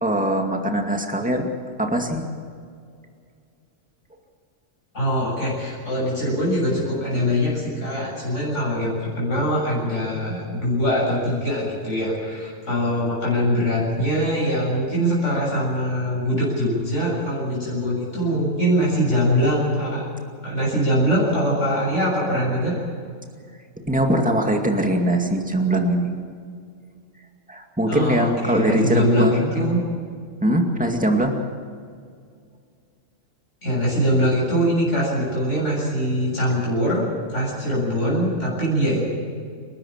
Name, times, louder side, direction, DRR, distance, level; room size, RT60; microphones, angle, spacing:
voice 1, 0.0-1.5 1.8-2.3 23.9-26.1 27.5-29.8 30.4-31.4, right 1 dB, 5° right, 2 dB, 2.2 m, -21 dB
voice 2, 4.9-20.1 20.4-22.8 27.9-29.8 33.6-39.1, equal, 70° left, -5 dB, 7.8 m, -22 dB
30.0 x 12.5 x 7.4 m, 2.2 s
omnidirectional pair, 1.3 m